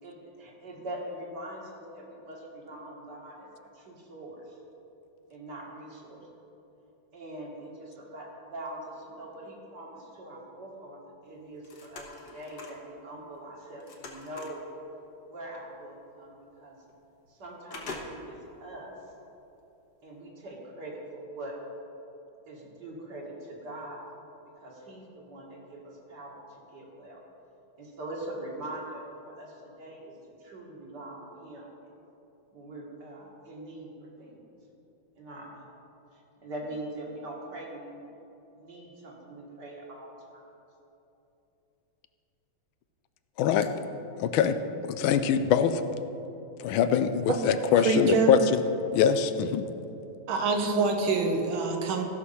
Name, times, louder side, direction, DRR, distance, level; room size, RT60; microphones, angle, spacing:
voice 1, 0.0-4.6 5.3-6.2 7.1-14.7 15.3-16.8 17.3-18.9 20.0-21.6 22.5-24.1 24.6-27.2 27.8-30.1 30.4-31.7 32.5-34.4 35.2-35.7 36.1-38.0 38.5-40.4, right 1 dB, 60° right, -2 dB, 2.3 m, -42 dB
sound 1, 11.4-12.9 13.3-14.7 15.8-15.9 16.3-16.4 16.9-17.3 17.7-18.5 19.0-19.1, left 3 dB, 55° left, 1.6 m, -44 dB
voice 2, 43.4-43.7 44.2-44.6 44.9-45.8 46.6-48.6 48.9-49.7, left 8 dB, 90° left, 10 dB, 1.4 m, -23 dB
voice 3, 47.9-48.3 50.3-52.0, right 4 dB, 85° right, 3 dB, 1.9 m, -25 dB
15.0 x 6.3 x 5.6 m, 3.0 s
omnidirectional pair, 2.2 m